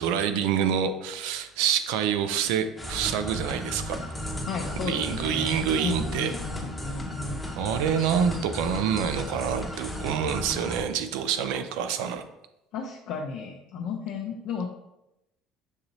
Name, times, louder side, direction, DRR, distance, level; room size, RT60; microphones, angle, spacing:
voice 1, 0.0-4.0 4.8-6.3 7.6-12.2, right 8 dB, 85° right, 9 dB, 0.4 m, -27 dB
sound 1, 2.8-10.8, left 1 dB, 5° left, 0.8 m, -35 dB
voice 2, 4.4-7.5 12.7-14.7, left 5 dB, 65° left, 0 dB, 0.5 m, -34 dB
6.4 x 2.9 x 2.6 m, 0.90 s
cardioid pair, 125°, 0 cm